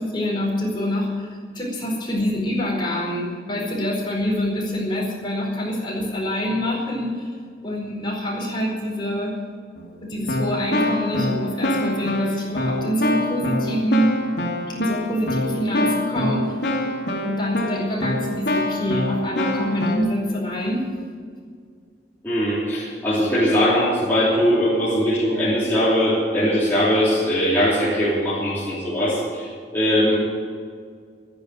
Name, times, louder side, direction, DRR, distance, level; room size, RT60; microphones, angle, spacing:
voice 1, 0.0-7.3 7.6-9.4 10.0-14.1 14.7-16.5 17.2-20.9, equal, 25° left, -3 dB, 4.7 m, -25 dB
Keyboard (musical), 9.8-9.9 10.3-20.0, left 1 dB, 75° left, 2.6 m, -25 dB
voice 2, 22.2-29.5 29.7-30.2, equal, 10° left, -10 dB, 3.4 m, -20 dB
12.5 x 10.5 x 9.3 m, 2.1 s
head